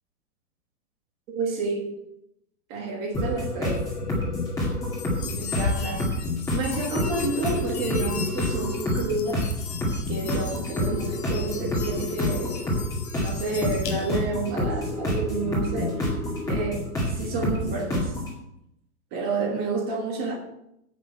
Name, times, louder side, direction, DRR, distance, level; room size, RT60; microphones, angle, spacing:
voice 1, 1.3-1.9 2.7-3.8 5.2-6.1 6.5-9.5 10.1-12.6 13.1-16.1 16.5-18.2 19.1-20.4, right 3 dB, 20° right, 1 dB, 1.4 m, -30 dB
sound 1, 3.1-18.3, left 1 dB, 10° left, 2.1 m, -28 dB
sound 2, 4.8-14.4, left 7 dB, 45° left, 1.3 m, -37 dB
8.6 x 6.6 x 8.2 m, 0.79 s
supercardioid pair, 175°, 44 cm